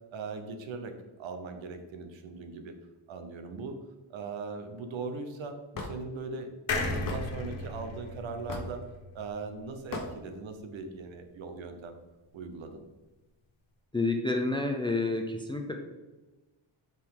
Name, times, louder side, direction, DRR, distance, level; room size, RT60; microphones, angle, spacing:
voice 1, 0.1-2.7 3.1-3.8 4.1-8.8 9.1-12.0 12.3-12.8, right 4 dB, 65° right, 6 dB, 1.1 m, -40 dB
Hammer / Wood, 5.7-5.9 7.1-7.2 8.5-8.8 9.9-10.1, left 3 dB, 40° left, 1.0 m, -36 dB
sound 1, 6.7-10.2 10.5-10.6 10.8-10.9, left 3 dB, 65° left, 1.5 m, -36 dB
voice 2, 13.9-15.8, left 2 dB, 10° left, 3 dB, 0.4 m, -29 dB
7.4 x 6.1 x 3.8 m, 1.2 s
wide cardioid pair, 175°, 49 cm